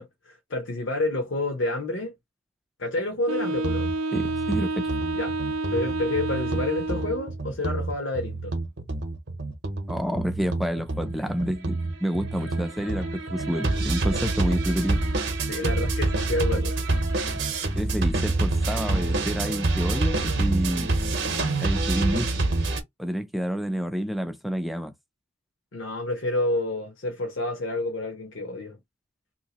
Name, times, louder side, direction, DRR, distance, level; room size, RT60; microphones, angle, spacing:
voice 1, 0.0-2.1 2.8-3.9 5.1-5.3 5.7-8.5 15.5-16.8 25.7-28.8, left 2 dB, 65° left, 0.9 m, -29 dB
Wind instrument woodwind instrument, 3.3-7.4, right 3 dB, 90° right, 0.5 m, -29 dB
sound 1, 3.6-22.8, right 2 dB, 55° right, 0.8 m, -27 dB
voice 2, 4.1-4.7 9.9-15.0 17.8-20.9 21.6-22.3 23.0-24.9, equal, ahead, 0.4 m, -29 dB
3.0 x 2.8 x 2.9 m
head